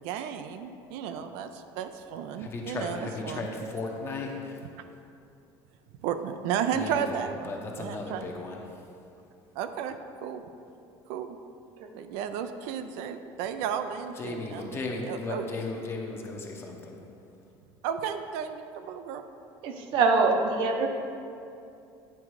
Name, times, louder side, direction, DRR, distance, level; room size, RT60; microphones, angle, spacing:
voice 1, 0.0-3.5 6.0-8.2 9.6-10.0 10.2-10.4 11.1-11.4 11.9-14.8 15.1-15.4 17.8-19.2, right 8 dB, 85° right, 8 dB, 0.4 m, -33 dB
voice 2, 2.3-5.0 6.7-9.0 14.2-17.0, left 3 dB, 25° left, 1 dB, 0.7 m, -36 dB
voice 3, 19.6-20.9, right 3 dB, 60° right, 4 dB, 0.8 m, -24 dB
9.0 x 3.6 x 4.8 m, 2.6 s
cardioid pair, 155°, 9 cm